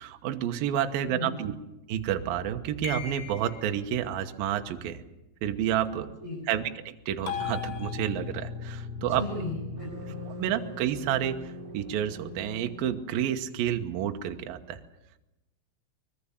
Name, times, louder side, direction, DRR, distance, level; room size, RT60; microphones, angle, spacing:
voice 1, 0.0-1.5 1.9-5.0 5.4-6.1 6.5-9.2 10.4-14.8, right 10 dB, 70° right, 6 dB, 2.4 m, -30 dB
voice 2, 1.0-1.4 6.2-6.5 9.0-10.3, left 2 dB, 5° left, -5 dB, 7.4 m, -37 dB
sound 1, 2.8-3.8 7.3-8.5, left 9 dB, 75° left, 4.3 m, -37 dB
sound 2, 7.3-12.9, left 3 dB, 25° right, 3.7 m, -40 dB
24.5 x 21.0 x 7.2 m, 0.94 s
omnidirectional pair, 5.4 m